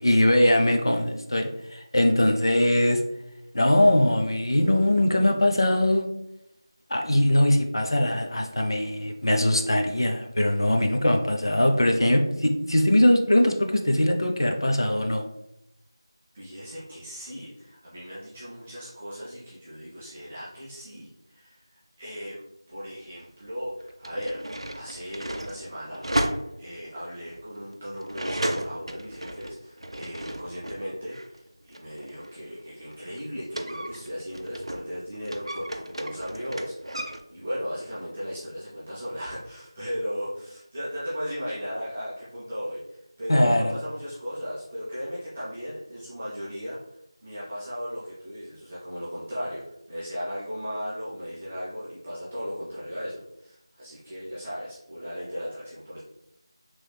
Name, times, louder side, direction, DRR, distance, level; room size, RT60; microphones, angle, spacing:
voice 1, 0.0-3.0 3.5-6.1 6.9-15.2 43.3-43.8, left 1 dB, 60° left, 3 dB, 0.5 m, -21 dB
voice 2, 16.3-22.4 22.7-26.2 26.6-46.8 47.2-49.6 49.9-56.0, equal, 10° right, -11 dB, 0.4 m, -36 dB
sound 1, 22.9-23.0 23.8-30.8 31.1-34.9 35.2-37.2, right 1 dB, 90° right, 0.4 m, -34 dB
3.3 x 3.1 x 2.2 m, 0.83 s
figure-of-eight pair, 175°, 3 cm